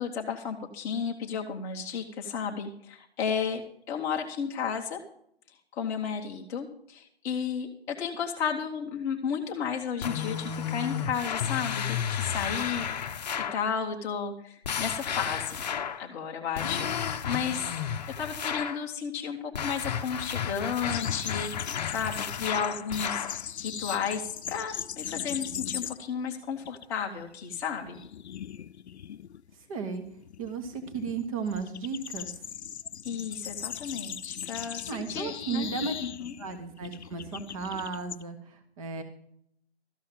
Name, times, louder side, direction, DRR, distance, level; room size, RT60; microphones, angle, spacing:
voice 1, 0.0-3.6 3.9-5.0 5.7-13.2 13.5-15.6 16.0-17.7 18.2-28.0 33.0-35.7 36.0-36.3, left 7 dB, 10° left, 0 dB, 0.8 m, -33 dB
sound 1, 10.0-13.7 14.6-16.1 16.6-18.8 19.5-23.4, left 8 dB, 40° left, 0.7 m, -32 dB
sound 2, 20.9-26.2 26.5-26.9 27.2-38.2, left 9 dB, 80° left, 0.6 m, -39 dB
voice 2, 29.7-30.0 30.4-32.3 34.9-35.9 36.4-39.0, right 5 dB, 30° right, 6 dB, 1.5 m, -34 dB
13.5 x 5.6 x 8.7 m, 0.69 s
hypercardioid pair, 160°, 32 cm